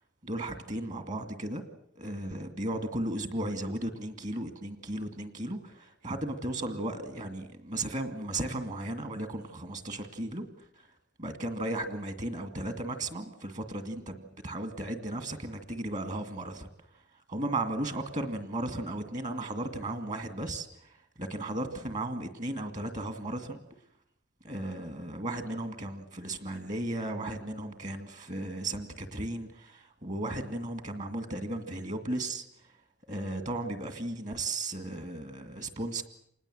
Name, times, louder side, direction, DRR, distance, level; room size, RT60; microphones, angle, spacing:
voice 1, 0.2-1.6 2.0-10.9 11.2-16.7 17.3-23.6 24.4-32.7 33.1-36.0, right 1 dB, 35° right, 8 dB, 2.2 m, -35 dB
26.5 x 20.0 x 7.8 m, 0.72 s
head